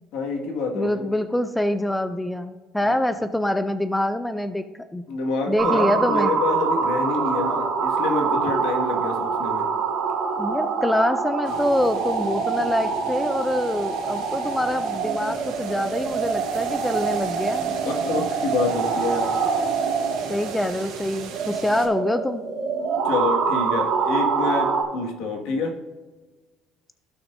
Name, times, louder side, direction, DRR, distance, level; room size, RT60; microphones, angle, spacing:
voice 1, 0.1-1.1 2.8-3.0 5.1-9.7 17.6-19.3 23.0-25.8, left 3 dB, 65° left, 2 dB, 1.7 m, -27 dB
voice 2, 0.7-4.6 4.9-5.0 5.5-6.3 10.4-17.7 20.3-22.4, left 1 dB, 5° left, 9 dB, 0.3 m, -25 dB
sound 1, 5.6-24.8, right 5 dB, 55° right, 2.1 m, -25 dB
sound 2, 11.4-21.9, right 5 dB, 85° right, 2.9 m, -39 dB
15.5 x 6.0 x 2.6 m, 1.3 s
cardioid pair, 175°, 0 cm